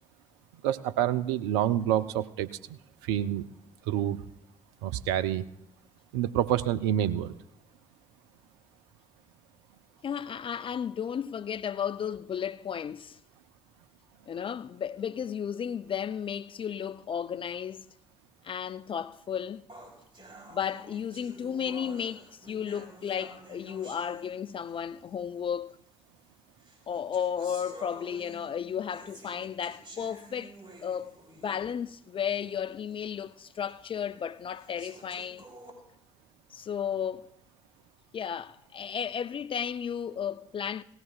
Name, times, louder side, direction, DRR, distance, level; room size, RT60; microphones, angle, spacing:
voice 1, 0.6-3.5 3.9-4.2 4.8-5.4 6.1-7.4, right 11 dB, 75° right, 0.4 m, -28 dB
voice 2, 10.0-13.2 14.3-17.9 18.4-19.6 20.5-25.8 26.9-30.6 30.8-35.5 36.5-37.3 38.1-40.8, left 8 dB, 40° left, 0.4 m, -34 dB
sound 1, 19.7-24.8 25.7-25.8 26.6-31.9 32.3-32.4 32.9-33.0 33.7-33.8 34.5-35.7, right 2 dB, 35° right, 3.9 m, -50 dB
17.5 x 15.0 x 2.4 m
figure-of-eight pair, 45°, 14 cm